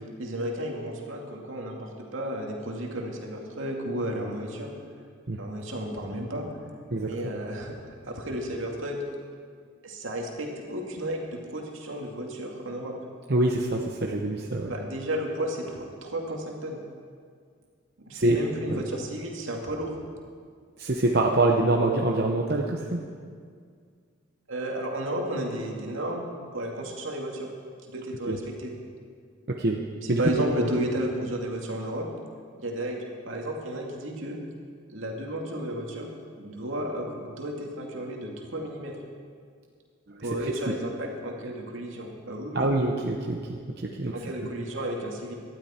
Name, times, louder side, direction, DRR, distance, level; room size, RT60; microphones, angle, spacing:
voice 1, 0.2-4.7 5.4-6.5 7.0-7.8 8.1-9.0 9.8-11.2 11.5-13.0 14.7-16.8 18.1-19.9 24.5-26.3 26.5-27.5 27.9-28.7 30.0-32.1 32.6-33.0 33.2-34.4 34.9-36.1 36.4-38.9 40.2-42.7 44.1-45.3, right 1 dB, 80° right, 0 dB, 2.3 m, -33 dB
voice 2, 13.3-14.7 18.1-18.4 18.7-18.8 20.8-23.0 28.3-28.4 29.5-29.8 30.1-30.2 30.6-30.7 40.1-40.3 40.7-40.8 42.5-44.1, right 2 dB, 50° right, 0 dB, 0.9 m, -25 dB
18.5 x 12.5 x 4.4 m, 2.1 s
head